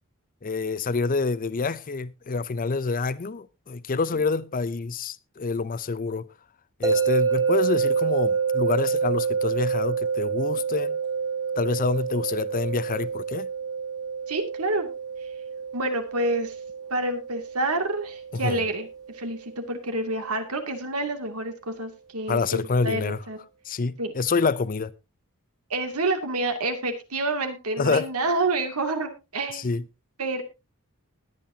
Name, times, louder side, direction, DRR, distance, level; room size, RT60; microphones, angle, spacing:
voice 1, 0.4-6.3 6.8-11.0 11.6-13.5 18.3-18.6 22.3-23.2 23.7-24.9 27.8-28.1 29.5-29.8, left 4 dB, 40° left, 0.6 m, -27 dB
sound 1, 6.8-19.9, right 6 dB, 20° right, 2.0 m, -28 dB
voice 2, 14.3-14.9 15.7-16.5 16.9-18.9 19.1-23.4 24.0-24.1 25.7-29.7 30.2-30.4, right 2 dB, 90° right, 2.5 m, -28 dB
20.5 x 9.0 x 2.8 m
head